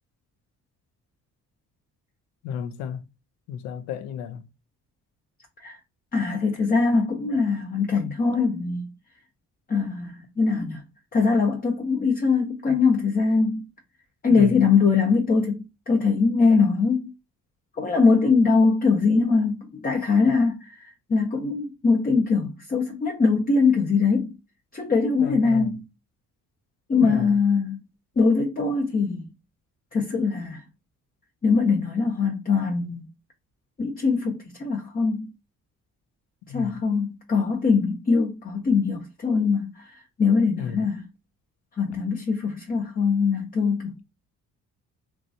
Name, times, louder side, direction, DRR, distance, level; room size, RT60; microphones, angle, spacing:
voice 1, 2.4-3.0 3.5-4.4 14.3-14.6 25.2-25.8 27.0-27.4 36.5-36.8 40.6-40.9, left 8 dB, 70° left, 0.6 m, -33 dB
voice 2, 6.1-8.9 9.7-10.8 11.1-13.7 14.2-17.1 17.8-20.7 21.1-24.3 24.7-25.8 26.9-27.8 28.2-29.3 29.9-30.6 31.4-33.0 33.8-35.3 36.5-39.7 40.2-41.0 41.8-43.9, left 4 dB, 20° left, 0.6 m, -22 dB
2.9 x 2.4 x 2.6 m
hypercardioid pair, 45°, 44 cm